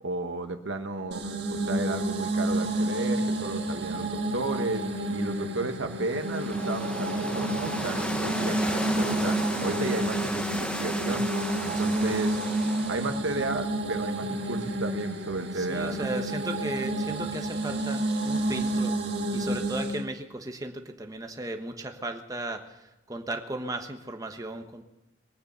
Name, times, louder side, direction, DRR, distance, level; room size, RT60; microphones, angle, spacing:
voice 1, 0.0-1.2 1.5-11.3 11.6-12.4 12.9-16.1, right 2 dB, 90° right, 7 dB, 1.3 m, -33 dB
sound 1, 1.1-20.0, right 1 dB, 60° right, 1.6 m, -30 dB
sound 2, 6.1-13.2, left 1 dB, 5° left, 0.8 m, -34 dB
voice 2, 11.7-12.1 15.5-19.0 19.3-24.8, right 2 dB, 20° right, 5 dB, 1.1 m, -36 dB
21.5 x 9.1 x 6.9 m, 0.98 s
head